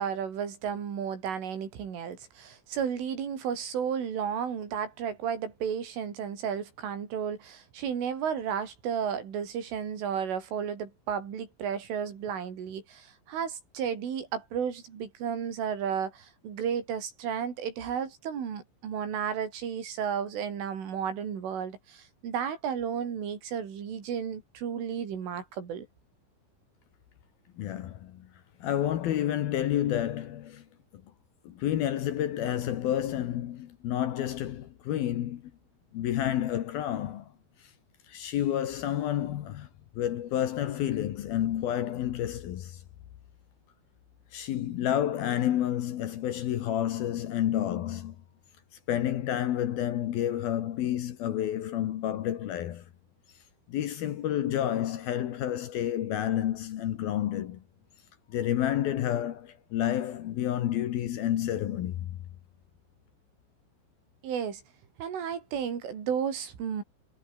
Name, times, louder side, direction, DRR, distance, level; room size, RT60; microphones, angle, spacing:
voice 1, 0.0-25.9 64.2-64.6 65.0-66.8, right 7 dB, 85° right, 6.7 m, -33 dB
voice 2, 27.6-28.3 28.6-30.7 31.4-35.5 35.9-37.3 38.1-39.7 40.0-42.8 44.3-48.2 48.9-52.8 53.7-57.6 58.3-62.2, left 11 dB, 65° left, 2.7 m, -30 dB
omnidirectional pair, 5.5 m